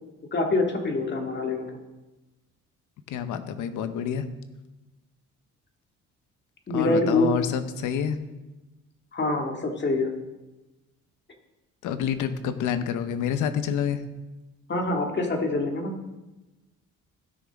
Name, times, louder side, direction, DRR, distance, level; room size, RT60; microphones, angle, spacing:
voice 1, 0.3-1.7 6.7-7.3 9.1-10.1 14.7-15.9, left 2 dB, 35° left, 2 dB, 2.0 m, -25 dB
voice 2, 3.1-4.2 6.7-8.2 11.8-14.0, left 8 dB, 90° left, 10 dB, 0.9 m, -28 dB
16.5 x 6.3 x 3.6 m, 1.1 s
cardioid pair, 90°, 30 cm